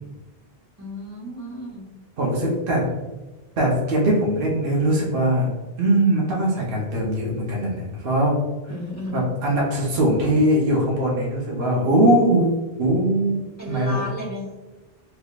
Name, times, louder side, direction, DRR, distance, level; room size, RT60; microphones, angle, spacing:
voice 1, 0.8-1.9 8.7-9.2 13.6-14.6, left 1 dB, 15° right, -7 dB, 1.2 m, -33 dB
voice 2, 2.2-2.8 3.6-5.5 5.8-8.4 9.1-12.5 12.8-13.4 13.7-14.0, right 1 dB, 65° right, -3 dB, 1.0 m, -21 dB
3.5 x 2.9 x 2.3 m, 1.2 s
omnidirectional pair, 1.0 m